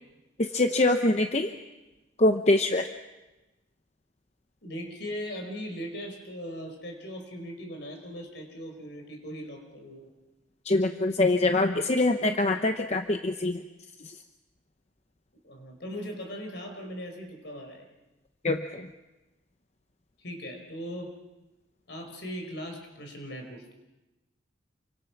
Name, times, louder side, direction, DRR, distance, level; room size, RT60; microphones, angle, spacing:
voice 1, 0.4-1.5 2.2-2.9 10.6-13.6 14.0-14.1 18.4-18.9, left 2 dB, 35° left, 6 dB, 0.8 m, -24 dB
voice 2, 4.6-10.1 15.4-17.9 20.2-21.1 21.9-23.7, equal, 65° left, 4 dB, 4.8 m, -39 dB
28.0 x 25.0 x 6.0 m, 1.1 s
head